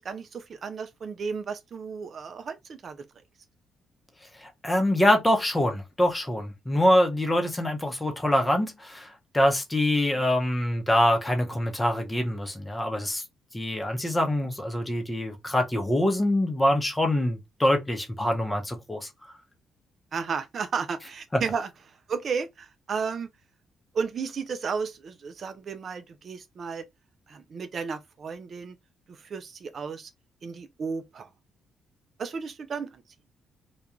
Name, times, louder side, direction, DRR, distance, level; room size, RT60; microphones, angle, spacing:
voice 1, 0.0-3.0 20.1-23.3 23.9-26.8 27.3-28.8 29.1-30.1 30.4-31.3 32.2-33.0, right 5 dB, 50° right, 0.3 m, -33 dB
voice 2, 4.4-13.2 13.5-19.1, left 1 dB, 15° left, 0.7 m, -25 dB
2.4 x 2.2 x 2.8 m
cardioid pair, 90°, 0 cm